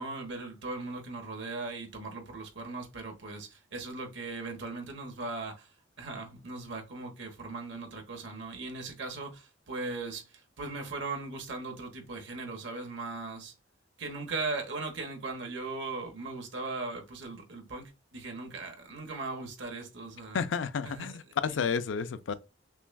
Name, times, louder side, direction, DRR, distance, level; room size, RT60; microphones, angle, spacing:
voice 1, 0.0-13.5 14.0-20.5 20.8-21.2 21.6-21.7, right 3 dB, 65° right, 1.1 m, -39 dB
voice 2, 20.3-22.3, left 6 dB, 75° left, 0.4 m, -31 dB
5.8 x 2.3 x 2.2 m
head